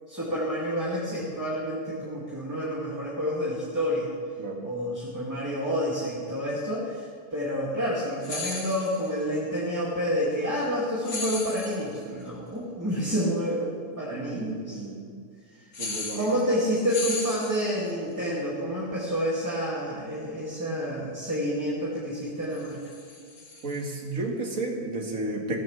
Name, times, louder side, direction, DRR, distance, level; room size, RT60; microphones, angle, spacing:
voice 1, 0.1-4.1 4.6-7.1 7.3-14.8 16.1-22.8, equal, 10° right, -7 dB, 2.4 m, -29 dB
sound 1, 8.2-9.1 11.0-12.0 15.7-16.6 16.9-17.9 22.5-23.9, left 3 dB, 65° left, 2.2 m, -36 dB
voice 2, 14.1-15.1 15.8-16.3 23.6-25.6, right 2 dB, 55° right, 1 dB, 2.2 m, -32 dB
16.5 x 14.0 x 3.4 m, 2.2 s
omnidirectional pair, 1.7 m